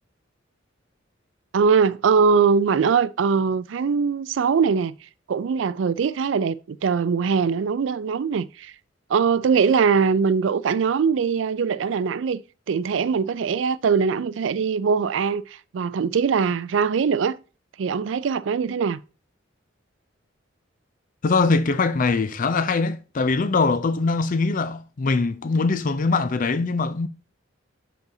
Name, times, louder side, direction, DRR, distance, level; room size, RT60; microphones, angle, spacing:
voice 1, 1.5-4.9 5.3-8.7 9.1-12.4 12.7-17.4 17.8-19.0, right 6 dB, 75° right, 0.4 m, -21 dB
voice 2, 21.2-27.1, left 4 dB, 45° left, 0.5 m, -22 dB
11.5 x 4.0 x 2.7 m
head